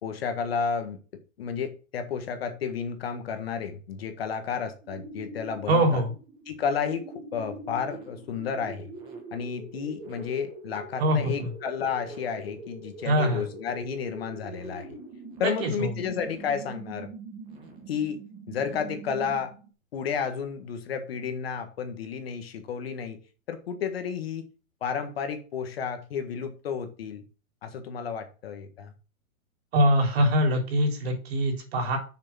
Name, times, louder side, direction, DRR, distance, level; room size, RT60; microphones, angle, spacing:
voice 1, 0.0-1.0 1.4-6.0 6.5-8.9 9.3-15.0 15.4-17.1 17.9-18.2 18.5-19.5 19.9-23.2 23.5-24.4 24.8-27.2 27.6-28.9, left 6 dB, 45° left, 7 dB, 1.6 m, -32 dB
sound 1, 4.8-19.7, right 3 dB, 10° right, 1.3 m, -43 dB
voice 2, 5.7-6.1 11.0-11.5 13.0-13.4 15.4-15.9 29.7-32.0, equal, 45° right, 2 dB, 4.0 m, -23 dB
6.9 x 6.7 x 6.0 m, 0.35 s
hypercardioid pair, 170°, 42 cm